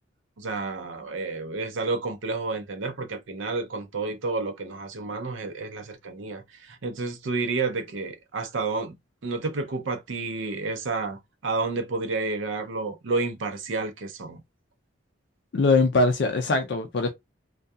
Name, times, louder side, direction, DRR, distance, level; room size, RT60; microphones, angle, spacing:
voice 1, 0.4-8.9 9.2-14.4, right 3 dB, 80° right, 0.6 m, -30 dB
voice 2, 15.5-17.1, left 3 dB, 60° left, 0.4 m, -22 dB
2.7 x 2.2 x 2.2 m
head